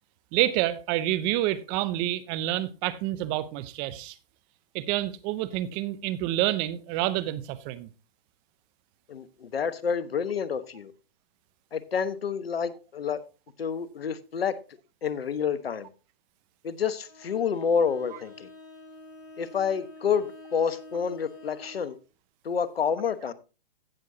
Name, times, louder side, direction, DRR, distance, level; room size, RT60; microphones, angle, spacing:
voice 1, 0.3-4.2 4.7-7.9, right 14 dB, 20° right, 0.4 m, -28 dB
voice 2, 9.1-10.9 11.7-13.2 13.6-14.6 15.0-15.9 16.6-18.5 19.4-22.0 22.4-23.3, left 6 dB, 85° left, 1.1 m, -28 dB
Bowed string instrument, 17.0-22.0, left 1 dB, 65° left, 4.7 m, -48 dB
16.5 x 6.4 x 2.7 m
hypercardioid pair, 135°, 29 cm